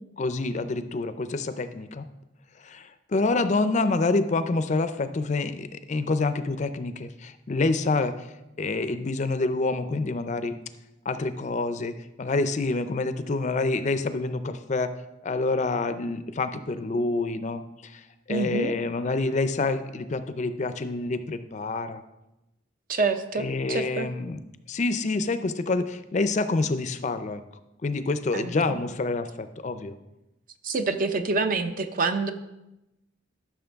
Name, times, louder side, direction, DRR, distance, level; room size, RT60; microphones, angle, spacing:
voice 1, 0.2-2.1 2.6-8.3 8.6-10.6 11.1-14.9 15.2-22.0 23.4-24.4 24.7-27.4 27.8-30.0, left 3 dB, 35° left, 11 dB, 0.4 m, -27 dB
voice 2, 18.3-18.7 22.9-24.1 28.3-28.8 30.6-32.3, right 4 dB, 45° right, 8 dB, 0.6 m, -27 dB
12.5 x 6.1 x 3.5 m, 0.95 s
head